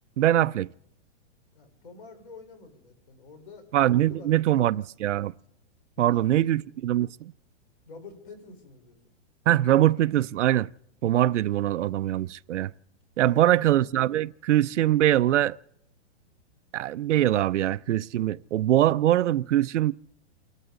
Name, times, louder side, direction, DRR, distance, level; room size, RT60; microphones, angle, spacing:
voice 1, 0.2-0.7 3.7-5.3 6.0-7.3 9.5-10.7 11.0-12.7 13.2-15.6 16.7-19.9, right 13 dB, 85° right, 0.6 m, -23 dB
voice 2, 1.5-3.7 4.0-4.7 6.0-6.7 7.8-9.0 13.2-13.6, left 4 dB, 50° left, 4.1 m, -47 dB
29.0 x 12.5 x 3.8 m
hypercardioid pair, 175°, 35 cm